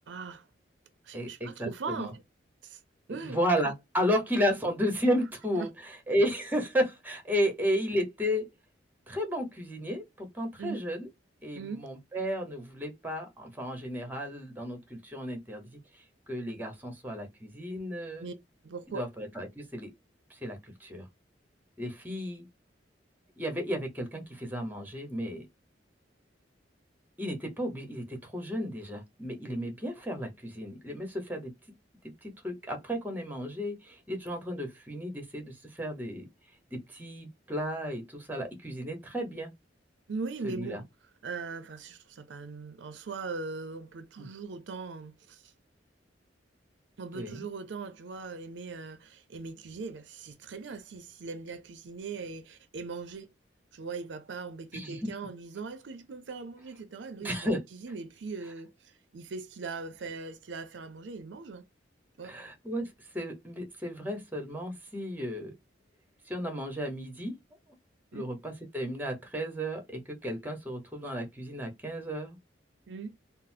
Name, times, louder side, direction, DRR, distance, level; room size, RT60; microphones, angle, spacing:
voice 1, 0.1-0.5 1.0-2.2 2.6-2.8 3.1-3.4 3.6-3.7 5.6-5.7 10.6-10.8 11.5-11.8 18.2-18.3 18.6-19.0 40.1-40.8 41.2-45.5 47.0-53.3 53.7-61.6 62.2-62.3 68.1-68.3 72.9-73.1, right 4 dB, 70° right, 0.5 m, -40 dB
voice 2, 1.1-2.1 3.1-8.5 9.1-11.1 11.4-15.8 16.3-18.3 18.9-19.9 20.3-21.1 21.8-22.5 23.4-25.5 27.2-31.5 32.2-36.3 36.7-39.5 40.4-40.8 44.2-44.3 47.1-47.4 54.7-55.1 57.2-57.6 62.2-65.5 66.3-67.4 68.1-72.4, equal, 10° right, 0.9 m, -33 dB
3.9 x 2.0 x 2.6 m
head